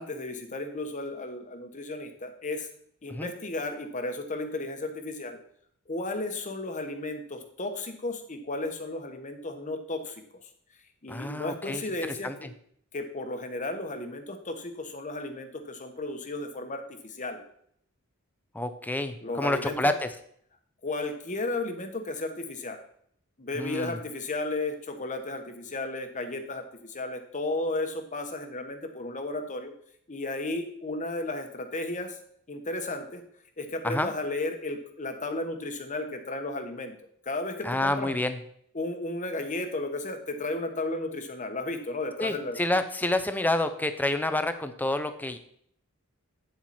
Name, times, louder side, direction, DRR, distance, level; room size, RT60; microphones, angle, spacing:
voice 1, 0.0-2.7 3.0-5.4 5.9-10.2 11.0-12.5 12.9-17.4 19.2-19.9 20.8-22.8 23.4-29.7 30.1-32.2 32.5-33.2 33.6-36.9 37.2-38.1 38.7-42.6, left 2 dB, 35° left, 6 dB, 1.2 m, -34 dB
voice 2, 11.1-11.8 12.2-12.3 18.5-20.1 23.5-24.0 33.8-34.1 37.6-38.4 42.2-45.4, left 1 dB, 10° left, 9 dB, 0.7 m, -28 dB
9.3 x 7.4 x 4.3 m, 0.66 s
head